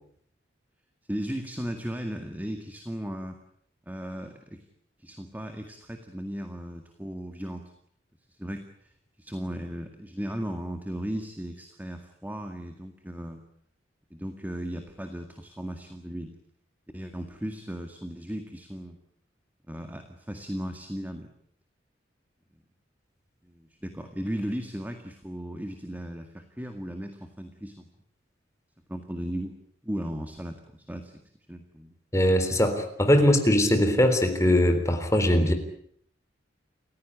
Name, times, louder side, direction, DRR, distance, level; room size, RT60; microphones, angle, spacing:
voice 1, 1.1-3.4 3.9-4.6 5.0-7.6 8.3-8.9 9.2-13.4 14.1-16.4 16.9-19.0 19.7-21.3 23.4-27.9 28.9-29.6 29.8-31.1 31.5-32.0, equal, 10° right, 6 dB, 1.9 m, -36 dB
voice 2, 32.1-35.5, left 1 dB, 15° left, 6 dB, 3.7 m, -21 dB
29.0 x 15.5 x 9.8 m, 0.67 s
head